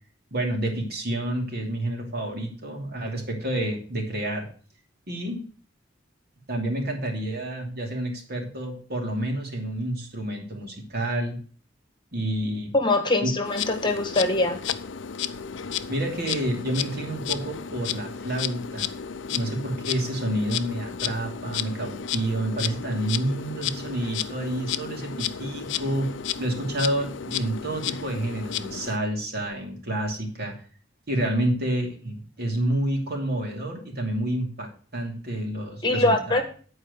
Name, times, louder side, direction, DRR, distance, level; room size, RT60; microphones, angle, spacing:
voice 1, 0.3-4.5 5.1-5.4 6.5-11.4 12.1-12.8 13.2-13.3 15.9-18.9 19.3-26.1 26.4-30.5 31.1-36.4, right 1 dB, 55° right, 2 dB, 2.7 m, -29 dB
voice 2, 12.7-14.6 35.8-36.4, left 2 dB, 25° left, 6 dB, 1.4 m, -23 dB
Insect, 13.4-29.0, left 8 dB, 70° left, 0.6 m, -33 dB
10.5 x 4.8 x 6.7 m, 0.41 s
head